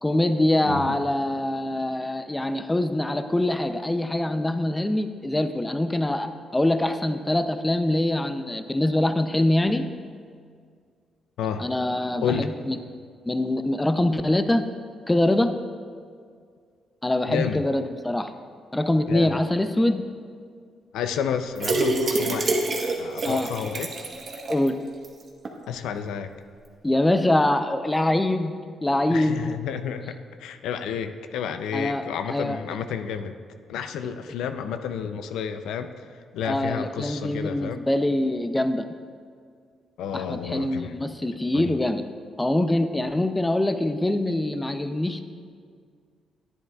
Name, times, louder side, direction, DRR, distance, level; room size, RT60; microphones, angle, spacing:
voice 1, 0.0-9.8 11.6-12.8 13.3-14.6 15.1-15.5 17.0-18.3 18.7-20.0 23.2-23.5 24.5-24.8 26.8-28.5 28.8-29.4 31.7-32.6 36.4-38.9 40.1-42.0 42.4-45.2, left 1 dB, 10° left, 9 dB, 0.5 m, -24 dB
voice 2, 0.6-1.0 11.4-11.6 12.2-12.5 17.3-17.6 19.1-19.4 20.9-23.9 25.7-26.3 29.1-33.4 33.7-36.0 36.3-37.8 40.0-41.1 41.5-41.7, left 7 dB, 85° left, 9 dB, 0.4 m, -31 dB
sound 1, 21.6-24.7 25.0-25.1 25.4-25.5, right 2 dB, 40° right, 1.1 m, -26 dB
11.0 x 9.8 x 2.3 m, 2.1 s
cardioid pair, 95°, 0 cm